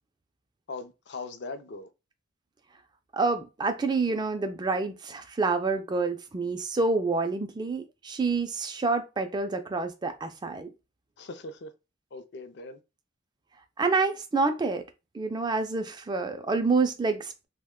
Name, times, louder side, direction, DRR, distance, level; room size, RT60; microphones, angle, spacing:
voice 1, 0.7-1.9 11.2-11.7 12.1-12.8, left 3 dB, 60° left, 0.4 m, -40 dB
voice 2, 3.1-10.7 13.8-14.8 15.1-17.5, right 3 dB, 20° right, 0.3 m, -28 dB
2.9 x 2.1 x 3.5 m
head